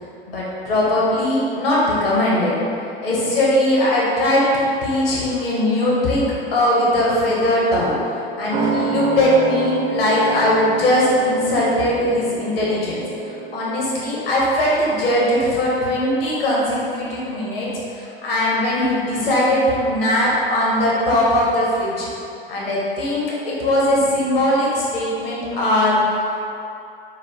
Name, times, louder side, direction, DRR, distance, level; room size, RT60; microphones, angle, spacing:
voice 1, 0.3-2.6 3.0-7.9 8.4-17.7 18.0-22.1 22.5-26.0, left 1 dB, 70° left, -6 dB, 1.2 m, -20 dB
sound 1, 8.5-15.6 15.9-16.0, right 3 dB, 20° right, 0.4 m, -28 dB
6.1 x 2.2 x 3.1 m, 2.7 s
hypercardioid pair, 85°, 30 cm